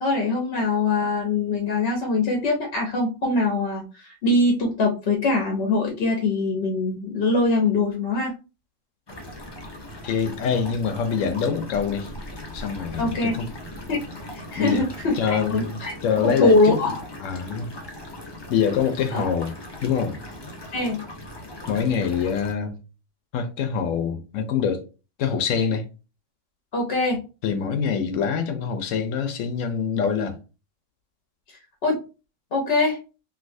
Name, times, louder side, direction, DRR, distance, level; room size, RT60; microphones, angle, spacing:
voice 1, 0.0-8.3 13.0-13.3 13.9-14.0 14.3-15.9 16.2-17.0 19.1-19.3 20.7-21.0 26.7-27.2 31.5-32.0 32.5-33.0, left 3 dB, 55° left, 1.0 m, -23 dB
sound 1, 9.1-22.5, left 1 dB, 30° left, 0.5 m, -39 dB
voice 2, 10.0-12.1 12.5-13.5 14.6-14.8 15.2-16.8 17.2-17.7 18.5-19.5 19.8-20.2 21.7-22.8 23.3-24.8 25.2-25.9 27.4-30.4, left 7 dB, 75° left, 1.0 m, -25 dB
3.1 x 2.8 x 2.6 m
omnidirectional pair, 1.3 m